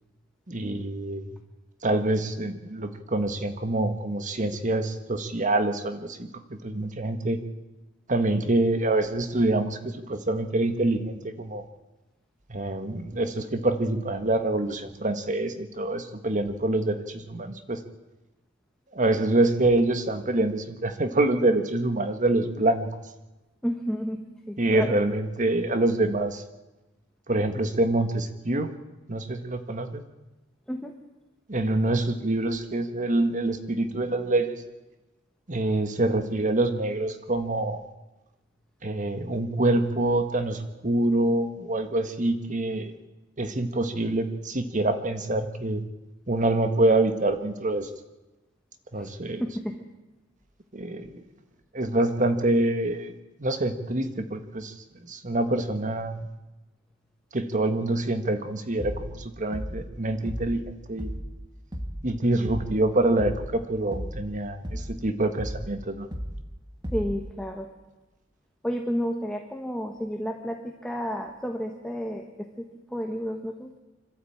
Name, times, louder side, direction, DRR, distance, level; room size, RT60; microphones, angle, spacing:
voice 1, 0.5-1.4 1.8-7.4 8.1-11.6 12.5-17.8 18.9-22.9 24.6-26.4 27.3-28.7 29.1-30.0 31.5-34.6 35.5-37.8 38.8-42.9 43.4-45.8 46.3-47.9 48.9-49.4 50.7-51.2 51.7-53.1 53.4-54.7 55.1-56.2 57.3-61.1 62.0-66.1, right 2 dB, 40° right, 8 dB, 1.6 m, -26 dB
voice 2, 23.6-25.0 30.7-30.9 48.9-49.1 49.4-49.9 66.9-67.7 68.6-73.8, equal, 5° left, 2 dB, 1.4 m, -31 dB
sound 1, 58.8-59.2 59.5-59.9 60.3-60.6 61.0-61.4 61.7-62.1 62.5-62.8 63.2-63.6 63.9-64.3 64.6-65.0 65.4-65.8 66.1-66.5 66.8-67.3, equal, 25° right, 1.9 m, -34 dB
26.0 x 12.5 x 8.7 m, 1.1 s
head